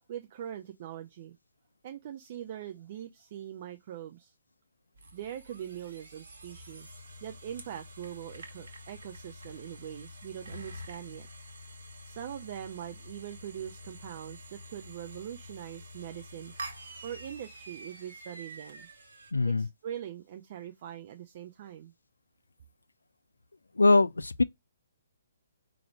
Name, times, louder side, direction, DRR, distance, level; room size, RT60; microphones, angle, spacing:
voice 1, 0.1-1.4 1.8-4.3 5.1-6.9 7.2-11.3 12.1-16.5 17.0-18.9 19.4-21.9, right 10 dB, 40° right, 0.5 m, -42 dB
sound 1, 4.9-19.3, equal, 55° right, 1.0 m, -47 dB
voice 2, 19.3-19.7 23.8-24.4, left 3 dB, 75° left, 0.3 m, -22 dB
4.8 x 2.0 x 4.6 m
figure-of-eight pair, 130°, 0 cm